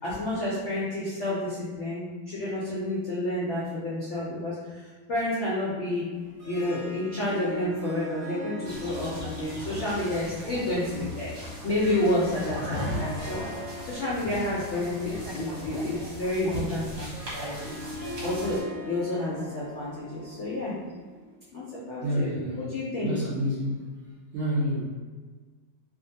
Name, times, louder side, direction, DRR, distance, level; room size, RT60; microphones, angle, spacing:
voice 1, 0.0-4.8 5.1-6.0 6.5-11.3 11.6-13.4 13.8-18.6 18.9-20.7 21.5-22.3 22.6-23.1, left 1 dB, 75° left, -8 dB, 0.6 m, -30 dB
Harp, 6.1-21.4, left 1 dB, 10° right, 0.6 m, -42 dB
sound 1, 8.6-18.6, left 1 dB, 50° right, 1.2 m, -38 dB
voice 2, 22.0-22.6 23.0-23.9 24.3-24.8, equal, 75° right, -8 dB, 0.6 m, -28 dB
3.0 x 2.5 x 2.7 m, 1.4 s
omnidirectional pair, 2.1 m